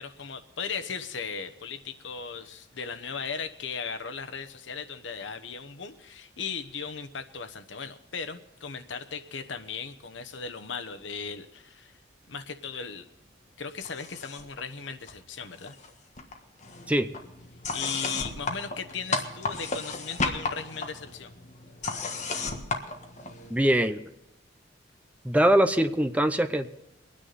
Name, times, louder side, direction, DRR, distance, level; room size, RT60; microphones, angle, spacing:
voice 1, 0.0-12.0 12.3-13.1 13.6-15.8 17.7-21.3, left 5 dB, 85° left, 8 dB, 1.1 m, -37 dB
sound 1, 13.8-14.6 14.9-15.9 16.2-23.7, left 3 dB, 40° left, 1.5 m, -34 dB
voice 2, 23.5-24.0 25.2-26.7, right 1 dB, 10° right, 8 dB, 0.7 m, -22 dB
23.5 x 9.8 x 4.1 m, 0.91 s
head